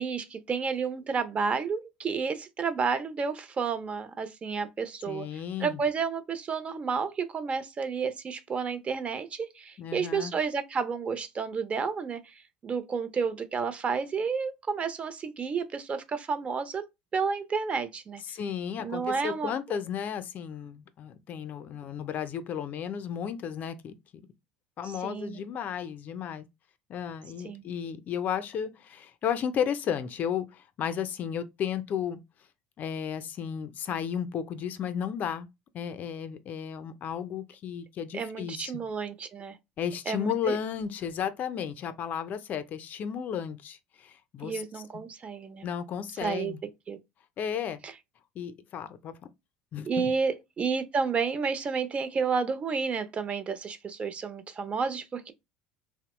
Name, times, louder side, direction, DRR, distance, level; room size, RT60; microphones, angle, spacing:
voice 1, 0.0-12.2 12.6-16.8 17.1-18.2 18.8-19.8 24.8-25.4 27.4-27.7 38.1-39.6 40.1-40.5 44.4-45.7 46.2-46.5 46.9-47.0 47.8-47.9 49.9-55.3, right 5 dB, 35° right, 0.6 m, -31 dB
voice 2, 5.1-5.8 9.8-10.3 18.3-23.9 24.8-26.4 26.9-32.2 32.8-35.5 35.7-38.7 39.8-44.6 45.6-46.6 47.4-47.8 48.4-49.1 49.7-50.1, left 8 dB, 50° left, 0.5 m, -33 dB
2.9 x 2.0 x 2.9 m
hypercardioid pair, 75°, 4 cm